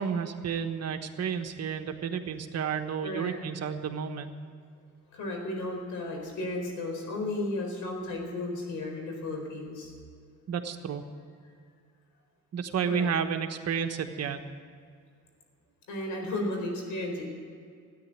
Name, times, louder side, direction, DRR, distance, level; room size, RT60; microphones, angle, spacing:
voice 1, 0.0-4.3 10.5-11.0 12.5-14.4, right 7 dB, 55° right, 7 dB, 1.3 m, -31 dB
voice 2, 3.0-3.3 5.1-9.9 12.8-13.1 15.9-17.4, left 2 dB, 85° left, 1 dB, 4.4 m, -34 dB
13.5 x 9.9 x 9.8 m, 2.2 s
cardioid pair, 90°, 30 cm